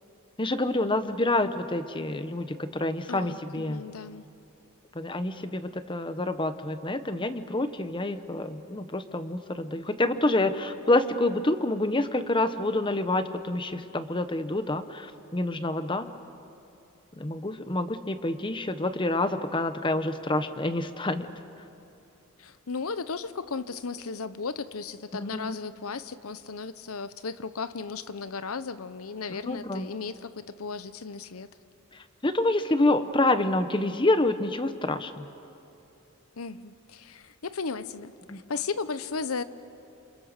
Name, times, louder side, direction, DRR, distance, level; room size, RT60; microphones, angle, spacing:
voice 1, 0.4-3.8 4.9-16.1 17.2-21.3 25.1-25.6 29.3-29.9 32.2-35.3 38.3-38.4, left 2 dB, 25° left, 10 dB, 1.0 m, -27 dB
voice 2, 3.1-4.3 22.4-31.5 36.4-39.4, left 4 dB, 85° left, 14 dB, 0.9 m, -35 dB
28.5 x 27.5 x 6.7 m, 2.8 s
head